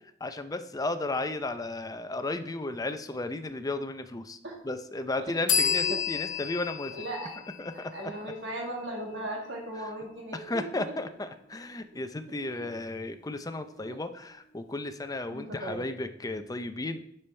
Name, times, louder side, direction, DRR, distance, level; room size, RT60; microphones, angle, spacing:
voice 1, 0.2-4.4 4.6-6.9 7.6-7.9 10.5-17.0, left 2 dB, 20° left, 9 dB, 0.6 m, -34 dB
sound 1, 5.5-9.0, left 7 dB, 85° left, 1.2 m, -31 dB
voice 2, 5.5-6.6 6.9-7.3 7.7-10.9 12.4-12.7 13.7-14.0 15.3-15.8, right 1 dB, 65° right, -2 dB, 1.8 m, -38 dB
9.9 x 7.0 x 3.3 m, 0.72 s
head